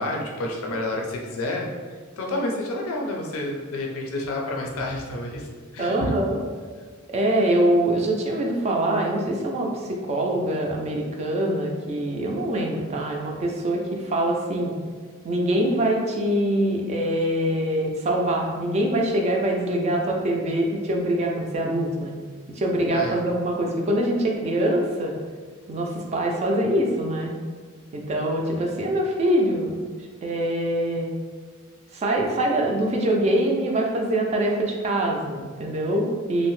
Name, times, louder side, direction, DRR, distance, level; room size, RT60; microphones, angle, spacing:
voice 1, 0.0-1.7 2.2-6.1 22.9-23.2, left 1 dB, 90° left, 0 dB, 0.4 m, -29 dB
voice 2, 5.8-6.4 7.1-14.7 15.2-22.1 22.6-25.1 25.7-27.3 27.9-29.8 30.2-31.1 31.9-36.5, right 1 dB, 30° right, 0 dB, 0.3 m, -24 dB
2.6 x 2.0 x 3.0 m, 1.5 s
head